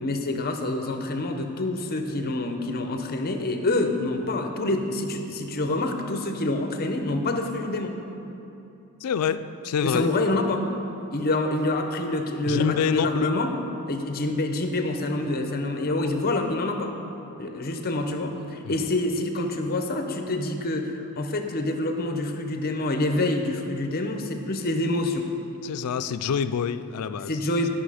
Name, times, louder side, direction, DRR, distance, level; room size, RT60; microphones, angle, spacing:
voice 1, 0.0-8.0 9.8-10.7 11.1-13.6 13.9-16.9 17.4-25.3 27.3-27.7, left 2 dB, 45° left, 5 dB, 0.7 m, -27 dB
voice 2, 9.0-10.1 12.4-13.4 18.7-18.9 25.6-27.4, left 7 dB, 85° left, 12 dB, 0.4 m, -27 dB
11.5 x 5.8 x 4.9 m, 2.9 s
head